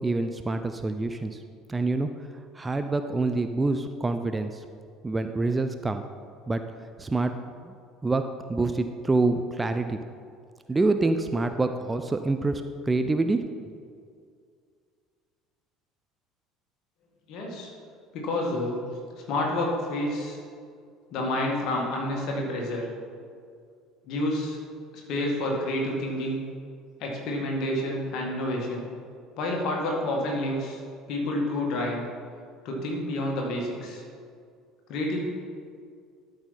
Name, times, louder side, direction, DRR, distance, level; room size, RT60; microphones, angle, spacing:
voice 1, 0.0-1.4 1.7-2.1 2.5-4.6 5.0-6.1 6.5-6.6 7.0-7.4 7.6-7.7 8.0-8.2 8.5-10.0 10.7-13.4, right 3 dB, 15° right, 8 dB, 0.4 m, -26 dB
voice 2, 17.3-17.7 18.1-18.8 19.3-20.4 21.1-22.9 24.1-24.6 25.1-26.4 27.0-28.9 29.4-30.8 31.1-32.1 32.6-34.0 34.9-35.2, left 1 dB, 50° left, -1 dB, 2.0 m, -29 dB
12.5 x 5.6 x 4.3 m, 2.2 s
figure-of-eight pair, 60°, 0 cm